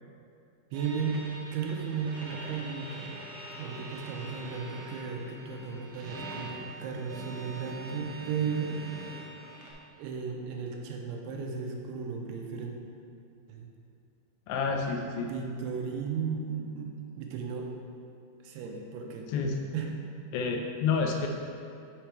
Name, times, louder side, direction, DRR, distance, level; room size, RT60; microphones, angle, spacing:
sound 1, 0.7-9.7, right 2 dB, 70° right, 2.0 m, -43 dB
voice 1, 0.7-1.2 1.5-3.2 3.6-8.8 10.0-12.8 13.5-13.7 15.2-17.7 18.4-19.3 19.7-19.9, right 6 dB, 85° right, 1 dB, 2.7 m, -35 dB
voice 2, 14.5-15.3 19.3-19.6 20.3-21.3, left 5 dB, 80° left, 2 dB, 2.3 m, -29 dB
6.7 x 4.8 x 4.5 m, 2.5 s
omnidirectional pair, 4.5 m